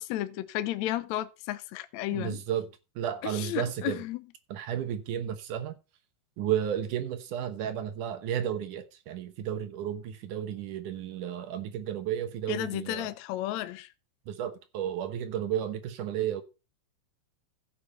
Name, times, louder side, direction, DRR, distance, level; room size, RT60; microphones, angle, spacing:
voice 1, 0.0-2.4 3.2-4.2 12.5-13.9, left 14 dB, 80° left, 1.6 m, -33 dB
voice 2, 2.1-4.0 4.5-5.8 6.4-13.1 14.3-16.4, right 10 dB, 70° right, 2.3 m, -33 dB
15.0 x 6.9 x 4.3 m
omnidirectional pair, 4.1 m